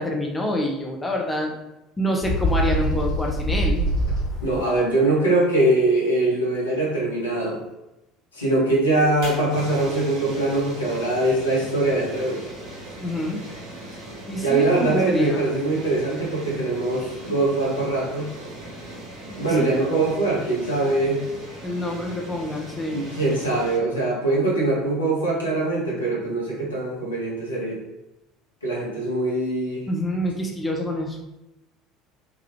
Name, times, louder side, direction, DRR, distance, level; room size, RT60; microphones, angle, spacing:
voice 1, 0.0-1.5 2.0-3.9 13.0-13.4 14.3-15.4 19.2-19.7 21.6-23.1 29.9-31.2, equal, 15° left, 0 dB, 0.6 m, -27 dB
Bird, 2.2-4.7, equal, 55° left, 1.2 m, -24 dB
voice 2, 4.4-7.6 8.3-12.4 14.4-18.3 19.4-21.2 22.9-27.8 28.6-29.8, right 2 dB, 80° left, -4 dB, 0.9 m, -22 dB
sound 1, 8.9-23.8, right 1 dB, 55° right, 1.2 m, -39 dB
3.4 x 2.3 x 2.9 m, 0.93 s
figure-of-eight pair, 65°, 0 cm